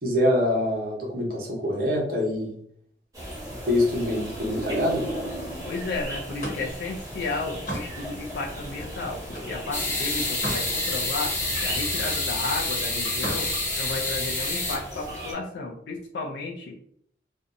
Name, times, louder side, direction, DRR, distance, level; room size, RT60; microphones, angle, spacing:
voice 1, 0.0-2.5 3.7-5.0, left 1 dB, 55° right, -2 dB, 0.8 m, -25 dB
sound 1, 3.1-15.3, equal, 20° right, 1.1 m, -36 dB
voice 2, 5.6-13.5 13.8-16.7, left 3 dB, 80° left, 0 dB, 0.4 m, -33 dB
Slam, 6.1-9.6 10.0-10.7 11.1-12.3 13.0-13.5, equal, 45° left, 0.9 m, -37 dB
sound 2, 9.7-14.8, left 2 dB, 15° left, 0.7 m, -28 dB
2.5 x 2.1 x 2.5 m, 0.66 s
head